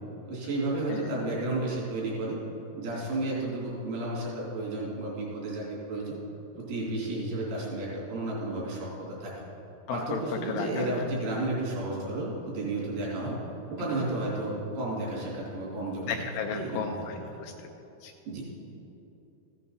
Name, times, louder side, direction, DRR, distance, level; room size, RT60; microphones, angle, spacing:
voice 1, 0.3-2.4 2.8-6.2 6.6-9.3 9.9-13.4 13.7-17.1 18.2-18.4, right 2 dB, 85° right, -5 dB, 5.0 m, -32 dB
voice 2, 9.9-10.2 10.5-10.9 16.1-17.5 18.0-18.1, left 6 dB, 80° left, 4 dB, 2.1 m, -34 dB
15.5 x 9.3 x 4.1 m, 2.9 s
omnidirectional pair, 4.4 m